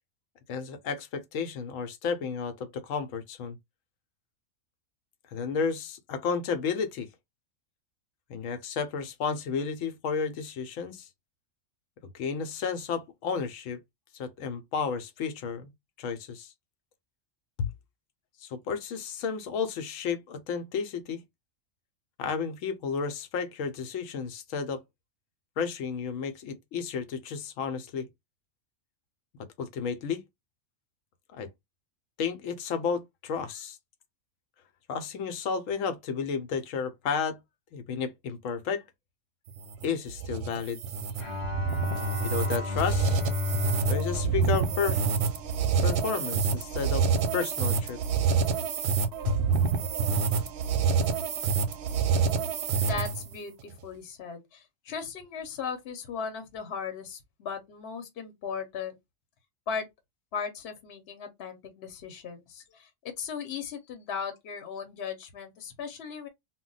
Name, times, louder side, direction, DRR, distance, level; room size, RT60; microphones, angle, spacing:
voice 1, 0.5-3.6 5.3-7.1 8.3-11.1 12.1-13.8 14.1-15.7 16.0-16.5 17.6-17.7 18.4-21.2 22.2-24.8 25.6-28.1 29.6-30.2 31.3-31.5 32.2-33.8 34.9-37.4 37.7-38.8 39.8-40.8 42.2-43.2 43.9-45.0 45.8-47.1 47.3-48.0 49.3-49.4, left 6 dB, 90° left, 1.0 m, -32 dB
sound 1, 39.5-53.3, right 6 dB, 65° right, 0.7 m, -27 dB
Bowed string instrument, 41.2-45.6, left 4 dB, 30° left, 0.8 m, -32 dB
voice 2, 52.7-59.0 59.7-59.9 60.3-62.9 63.2-66.3, left 6 dB, 60° left, 0.9 m, -37 dB
2.2 x 2.1 x 3.8 m
omnidirectional pair, 1.3 m